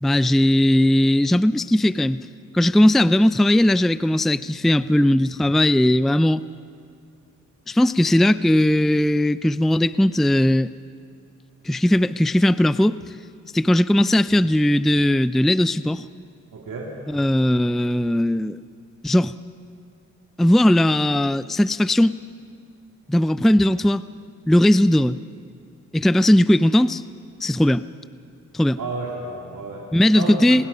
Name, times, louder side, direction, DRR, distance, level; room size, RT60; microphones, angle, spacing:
voice 1, 0.0-2.2 2.5-6.4 7.7-10.7 11.6-13.0 13.5-16.2 17.1-18.6 19.0-19.3 20.4-22.2 23.1-24.0 24.5-25.2 25.9-27.0 27.4-27.8 28.5-28.8 29.9-30.6, left 1 dB, ahead, 16 dB, 0.4 m, -18 dB
voice 2, 16.5-16.9 28.8-29.8 30.1-30.7, right 3 dB, 80° right, -2 dB, 2.6 m, -31 dB
24.5 x 21.0 x 5.5 m, 2.3 s
cardioid pair, 55°, 32 cm